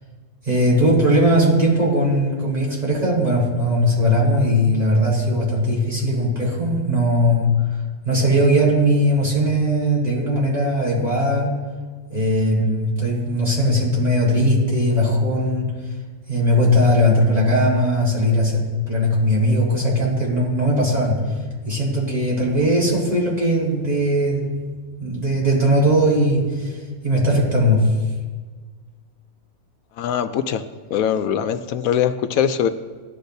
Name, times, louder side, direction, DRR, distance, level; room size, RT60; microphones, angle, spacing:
voice 1, 0.4-7.5 8.0-11.6 12.1-15.7 16.3-21.4 21.6-24.5 25.0-26.8 27.0-27.9, equal, 30° right, -6 dB, 4.2 m, -19 dB
voice 2, 30.0-30.6 30.9-32.7, left 9 dB, 80° left, 10 dB, 1.0 m, -21 dB
18.5 x 11.5 x 2.7 m, 1.5 s
omnidirectional pair, 1.5 m